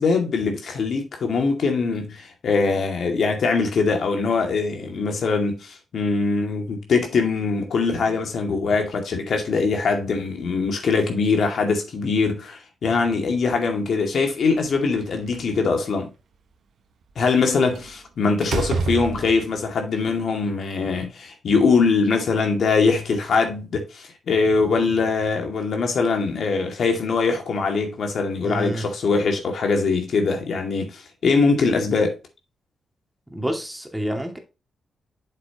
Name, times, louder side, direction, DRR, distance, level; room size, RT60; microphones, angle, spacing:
voice 1, 0.0-16.1 17.2-32.2, left 4 dB, 70° left, 2.2 m, -22 dB
Slam, 14.6-15.6 17.7-18.0 18.4-19.6, right 4 dB, 75° right, 1.2 m, -28 dB
voice 2, 28.4-28.9 33.3-34.4, right 1 dB, 10° right, 2.2 m, -28 dB
8.1 x 6.8 x 2.9 m
supercardioid pair, 55°, 0 cm